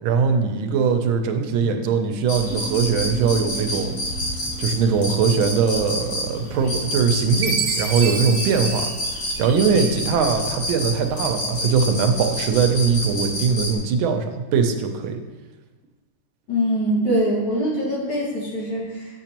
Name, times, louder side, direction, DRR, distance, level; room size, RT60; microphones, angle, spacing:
voice 1, 0.0-3.9 4.6-8.9 9.4-15.2, right 5 dB, 90° right, 6 dB, 1.5 m, -21 dB
sound 1, 2.3-13.7, left 1 dB, 65° left, 2.4 m, -29 dB
sound 2, 2.5-7.6, right 2 dB, 55° right, 1.5 m, -40 dB
Chime, 7.4-10.0, right 5 dB, 70° right, 1.5 m, -29 dB
voice 2, 16.5-19.2, equal, 85° left, -5 dB, 2.7 m, -23 dB
7.6 x 6.9 x 2.9 m, 1.3 s
omnidirectional pair, 2.2 m